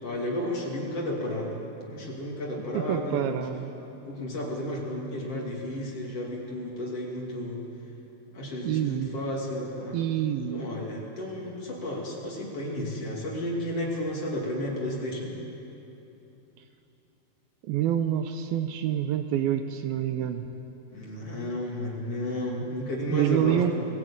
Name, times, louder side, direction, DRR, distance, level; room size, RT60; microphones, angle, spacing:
voice 1, 0.0-1.6 1.9-3.4 4.1-7.6 8.3-10.1 10.5-15.4 20.9-23.7, left 1 dB, 40° left, -3 dB, 3.3 m, -32 dB
voice 2, 2.7-3.7 8.6-9.1 9.9-10.7 17.7-20.5 23.1-23.7, right 11 dB, 80° right, 8 dB, 2.4 m, -27 dB
21.0 x 16.5 x 8.7 m, 2.9 s
omnidirectional pair, 4.6 m